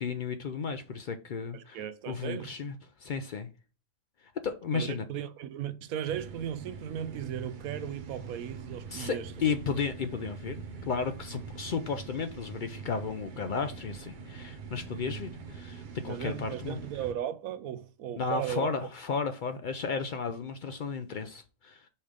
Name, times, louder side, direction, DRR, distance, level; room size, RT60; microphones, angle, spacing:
voice 1, 0.0-3.5 4.2-5.1 8.9-16.8 18.1-21.9, left 5 dB, 70° left, 0.4 m, -34 dB
voice 2, 1.5-2.6 4.7-9.3 16.1-18.9, right 10 dB, 90° right, 1.1 m, -36 dB
sound 1, 6.1-17.1, right 5 dB, 45° right, 0.6 m, -44 dB
5.5 x 3.3 x 5.1 m
omnidirectional pair, 1.5 m